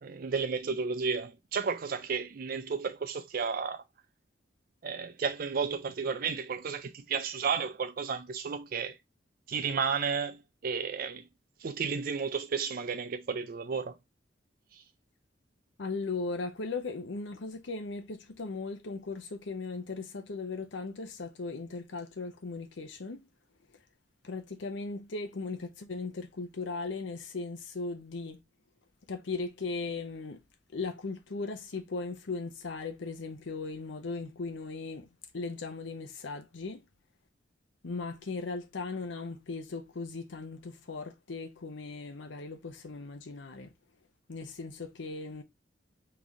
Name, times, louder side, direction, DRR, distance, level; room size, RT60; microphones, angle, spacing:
voice 1, 0.0-3.8 4.8-9.0 9.5-11.3 11.6-13.9 14.7-14.8, right 5 dB, 50° right, 0.4 m, -33 dB
voice 2, 15.8-23.2 24.2-28.4 29.1-30.4 30.7-35.1 35.3-36.8 37.8-43.7 44.3-45.4, left 3 dB, 85° left, 0.7 m, -38 dB
4.0 x 3.3 x 3.4 m
head